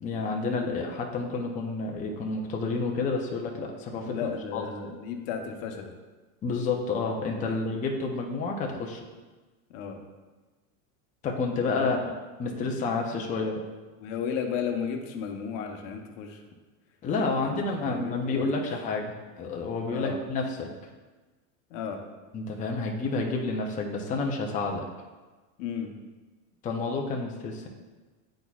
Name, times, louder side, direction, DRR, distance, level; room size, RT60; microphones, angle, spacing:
voice 1, 0.0-4.7 6.4-9.0 11.2-12.0 12.4-13.6 17.0-20.7 22.3-24.9 26.6-27.7, left 3 dB, 15° left, 1 dB, 0.5 m, -30 dB
voice 2, 4.0-5.9 7.4-7.7 9.7-10.0 11.6-11.9 14.0-16.4 17.4-18.7 19.9-20.2 21.7-22.0 25.6-25.9, left 7 dB, 50° left, 4 dB, 0.9 m, -34 dB
9.6 x 4.2 x 2.3 m, 1.3 s
supercardioid pair, 135°, 46 cm